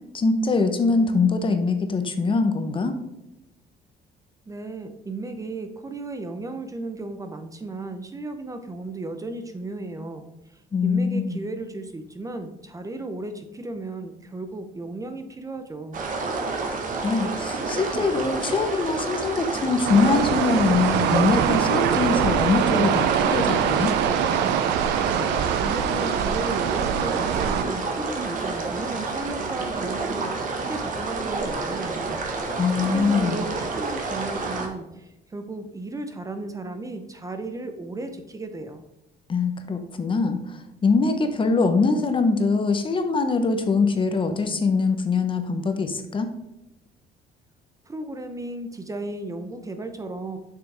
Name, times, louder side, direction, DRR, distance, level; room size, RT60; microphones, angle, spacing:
voice 1, 0.1-2.9 10.7-11.4 17.0-23.9 32.6-33.5 39.3-46.3, left 4 dB, 30° left, 8 dB, 0.9 m, -23 dB
voice 2, 4.5-16.0 25.6-32.2 32.7-38.8 47.9-50.4, right 2 dB, 20° right, 7 dB, 0.7 m, -35 dB
sound 1, 15.9-34.7, right 3 dB, 50° right, 1.4 m, -29 dB
sound 2, 19.9-27.6, right 9 dB, 85° right, 0.6 m, -23 dB
7.0 x 5.9 x 3.4 m, 0.93 s
cardioid pair, 110°, 17 cm